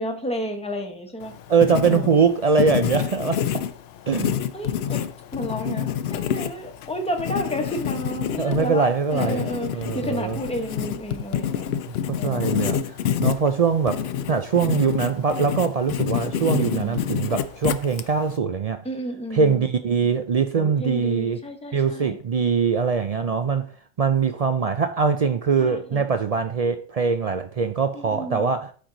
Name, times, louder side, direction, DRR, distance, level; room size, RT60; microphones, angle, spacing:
voice 1, 0.0-1.4 1.8-2.2 4.5-5.0 5.3-11.7 12.2-12.7 16.4-17.0 18.8-19.7 20.5-22.2 25.6-26.0 27.9-28.5, equal, 5° left, 1.0 m, -32 dB
Writing, 1.2-18.4, left 9 dB, 65° left, 0.7 m, -28 dB
voice 2, 1.5-3.6 4.1-4.3 8.4-10.4 12.1-12.8 13.2-18.8 19.3-21.4 21.7-23.7 24.0-28.7, right 5 dB, 65° right, 0.3 m, -22 dB
12.0 x 4.6 x 3.8 m
omnidirectional pair, 1.3 m